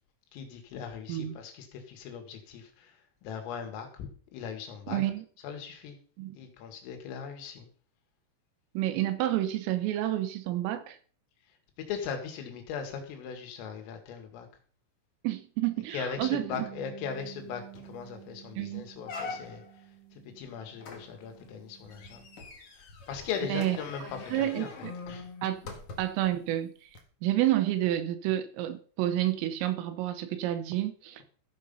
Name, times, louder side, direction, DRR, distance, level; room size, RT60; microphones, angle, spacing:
voice 1, 0.3-2.9 3.2-5.0 5.4-6.0 6.3-7.7 11.8-14.5 15.9-19.6 20.4-22.2 23.1-25.3, left 7 dB, 85° left, 4.6 m, -39 dB
voice 2, 1.1-1.4 4.9-5.3 6.2-6.4 8.8-11.0 15.2-16.7 18.6-18.9 23.5-23.8 24.3-24.9 25.4-25.6 26.0-26.7 27.2-31.2, right 13 dB, 85° right, 3.6 m, -29 dB
Bass guitar, 16.2-22.4, right 14 dB, 60° right, 3.3 m, -50 dB
sound 1, 17.3-17.4 17.7-18.1 18.5-18.6 19.0-19.8 20.8-26.3 26.9-27.0, left 4 dB, 55° left, 1.6 m, -44 dB
14.5 x 7.0 x 5.4 m
omnidirectional pair, 5.8 m